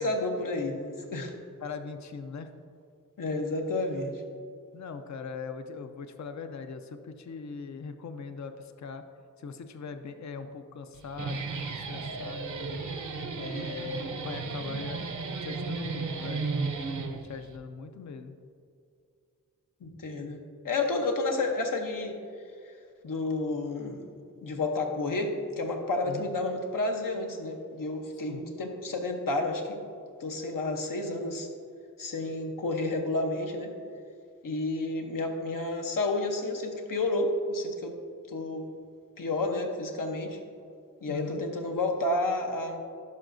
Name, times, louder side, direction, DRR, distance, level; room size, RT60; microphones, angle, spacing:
voice 1, 0.0-1.3 3.2-4.2 19.8-20.4 20.6-22.2 23.0-24.0 24.4-29.8 30.2-31.5 32.0-33.7 34.4-38.0 38.3-38.7 39.2-40.4 41.0-42.8, left 2 dB, 85° left, 3 dB, 0.9 m, -30 dB
voice 2, 1.6-2.5 4.7-9.0 9.4-12.9 13.4-15.0 15.4-16.5 17.3-18.4 26.0-26.3 28.3-28.4 41.1-41.4, left 5 dB, 60° left, 8 dB, 0.5 m, -40 dB
Guitar, 10.9-17.6, right 4 dB, 70° right, 0.6 m, -34 dB
11.0 x 5.6 x 2.6 m, 2.3 s
wide cardioid pair, 85°, 32 cm